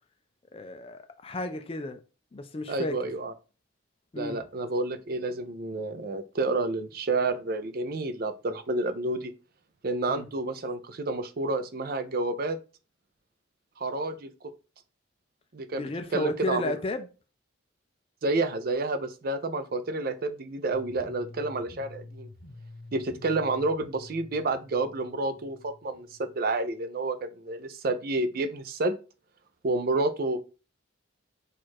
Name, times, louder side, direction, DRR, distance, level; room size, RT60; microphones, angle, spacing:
voice 1, 0.5-2.0 2.3-3.0 4.1-4.4 10.1-10.2 15.8-17.1, left 2 dB, 30° left, 0.4 m, -33 dB
voice 2, 2.7-3.3 4.2-9.3 9.8-12.6 13.8-14.3 15.5-15.8 16.1-16.7 18.2-22.3 22.9-26.1 26.3-28.9 29.6-30.4, right 2 dB, 45° right, 0.5 m, -29 dB
sound 1, 20.7-26.7, left 2 dB, 65° left, 0.9 m, -48 dB
4.4 x 2.5 x 4.5 m
head